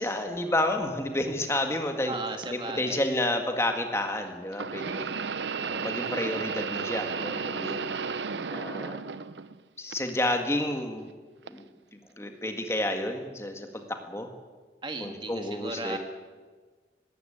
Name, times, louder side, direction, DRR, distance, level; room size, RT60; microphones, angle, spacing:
voice 1, 0.0-2.1 2.5-5.1 5.6-7.9 8.5-9.0 9.8-11.1 11.4-11.6 11.9-14.3 15.0-16.0, left 1 dB, 15° left, 5 dB, 2.0 m, -30 dB
voice 2, 2.1-3.0 14.8-16.0, right 3 dB, 25° right, 6 dB, 1.6 m, -36 dB
sound 1, 2.4-2.5 4.5-9.6 9.9-10.7 11.5-11.6 12.6-12.7, right 5 dB, 80° right, 0.7 m, -33 dB
19.5 x 16.5 x 9.2 m, 1.4 s
head